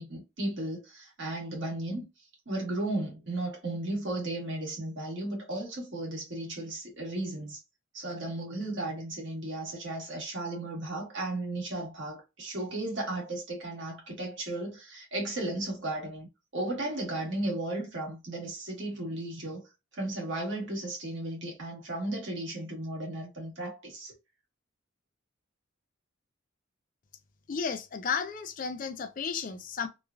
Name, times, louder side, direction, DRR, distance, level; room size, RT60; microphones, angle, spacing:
voice 1, 0.0-2.0 2.4-7.6 7.9-16.3 16.5-24.1, right 2 dB, 60° right, 1.3 m, -35 dB
voice 2, 27.5-29.9, left 6 dB, 40° left, 0.4 m, -33 dB
3.1 x 2.3 x 2.2 m
head